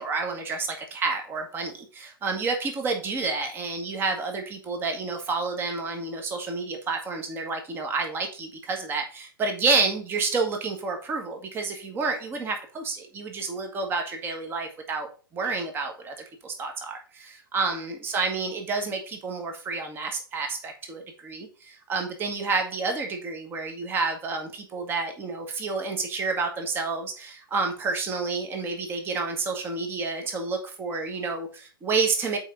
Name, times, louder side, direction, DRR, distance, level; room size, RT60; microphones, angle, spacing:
voice 1, 0.0-15.1 15.3-16.1 16.4-32.4, right 4 dB, 20° right, 4 dB, 1.5 m, -29 dB
8.1 x 4.7 x 3.8 m, 0.37 s
figure-of-eight pair, 110°, 12 cm